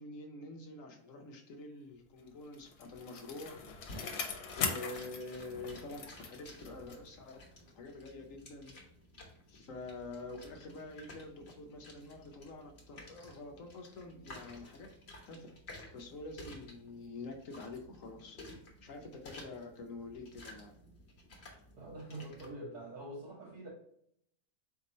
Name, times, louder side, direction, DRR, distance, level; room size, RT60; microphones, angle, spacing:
voice 1, 0.0-3.7 4.5-7.4 7.7-8.7 9.5-15.0 15.3-15.5 15.9-20.8, left 2 dB, 65° left, 2 dB, 1.0 m, -47 dB
Bicycle, 2.3-7.2 7.5-7.6, left 5 dB, 80° left, 1.3 m, -41 dB
sound 1, 3.8-22.5, left 1 dB, 45° left, 1.3 m, -54 dB
voice 2, 21.7-23.7, right 1 dB, 85° right, -8 dB, 1.9 m, -45 dB
4.5 x 2.8 x 4.1 m, 0.71 s
omnidirectional pair, 1.6 m